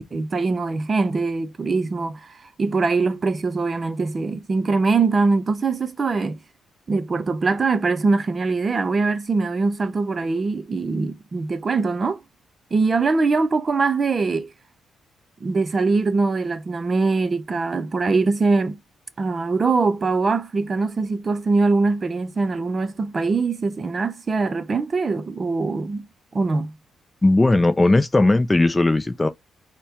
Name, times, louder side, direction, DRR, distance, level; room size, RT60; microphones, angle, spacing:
voice 1, 0.1-6.4 6.9-12.2 12.7-14.5 15.4-18.8 19.2-26.1 26.3-26.7, right 4 dB, 35° right, 0.5 m, -22 dB
voice 2, 27.2-29.3, left 2 dB, 15° left, 0.4 m, -17 dB
4.2 x 2.2 x 3.5 m
cardioid pair, 105°, 0 cm